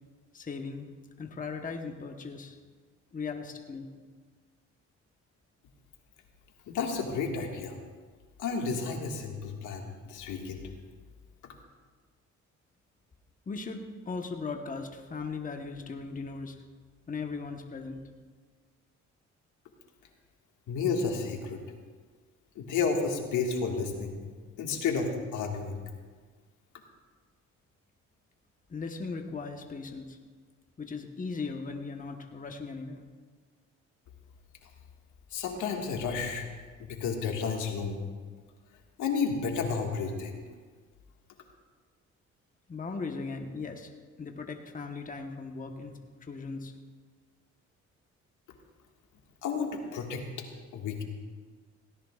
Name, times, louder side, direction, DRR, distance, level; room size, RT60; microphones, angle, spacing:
voice 1, 0.3-0.9 1.2-2.6 3.1-3.9 13.5-16.6 17.1-18.0 28.7-30.2 30.8-33.0 42.7-43.9 44.2-46.7, left 4 dB, 25° left, 4 dB, 1.1 m, -38 dB
voice 2, 6.7-7.8 8.4-10.6 20.7-21.6 22.5-24.2 24.6-25.8 35.3-36.4 36.8-38.0 39.0-40.4 49.4-50.4 50.7-51.0, left 5 dB, 85° left, 1 dB, 1.8 m, -31 dB
17.5 x 17.0 x 2.4 m, 1.5 s
cardioid pair, 90°, 30 cm